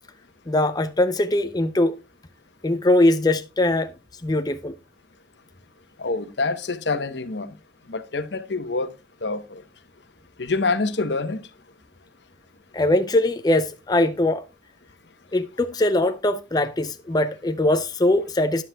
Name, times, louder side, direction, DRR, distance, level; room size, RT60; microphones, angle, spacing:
voice 1, 0.5-2.0 2.6-3.9 4.2-4.7 12.7-14.4 15.3-18.6, left 1 dB, 20° left, 0.5 m, -21 dB
voice 2, 6.0-7.5 7.9-8.9 9.2-9.6 10.4-11.4, left 3 dB, 75° left, 0.9 m, -26 dB
13.5 x 9.7 x 2.2 m
head